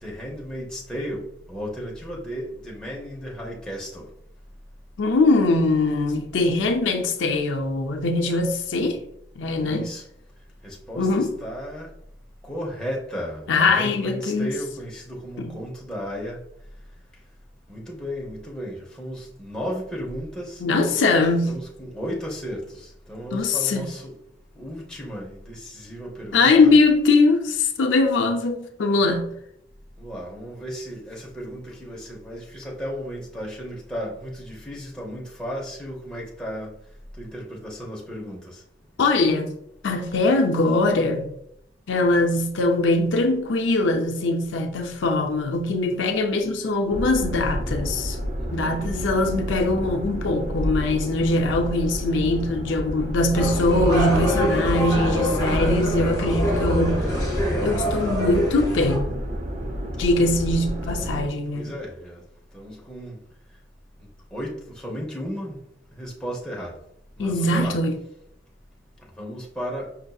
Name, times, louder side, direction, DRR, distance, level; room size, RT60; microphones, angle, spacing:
voice 1, 0.0-4.1 9.6-10.0 10.6-11.9 12.4-16.4 17.7-21.0 21.5-24.1 24.5-26.7 30.0-36.7 37.2-38.6 48.4-49.1 60.1-60.3 61.5-62.3 62.5-63.2 64.0-65.6 65.9-66.8 67.2-67.8 69.2-69.9, equal, 5° left, 0.7 m, -34 dB
voice 2, 5.0-9.0 9.4-9.9 11.0-11.3 13.5-14.5 15.4-15.6 20.6-21.6 23.3-23.9 26.3-29.3 39.0-39.5 39.8-41.3 41.9-48.2 48.5-57.1 57.6-59.1 60.0-61.7 67.2-68.0, left 2 dB, 70° left, 0.5 m, -22 dB
sound 1, 46.9-61.3, equal, 35° right, 0.4 m, -30 dB
sound 2, 53.3-59.0, equal, 20° left, 1.4 m, -24 dB
5.6 x 2.6 x 2.3 m
head